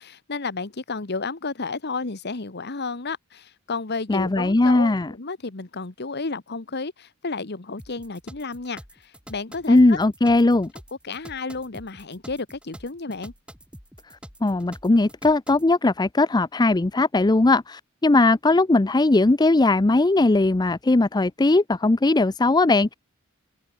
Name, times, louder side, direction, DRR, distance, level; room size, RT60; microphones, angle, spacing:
voice 1, 0.0-10.0 11.0-13.3, left 4 dB, 55° left, 1.3 m, -32 dB
voice 2, 4.1-5.1 9.7-10.7 14.4-22.9, left 2 dB, 20° left, 0.5 m, -19 dB
sound 1, 7.8-15.7, equal, 5° right, 7.1 m, -46 dB
open air
head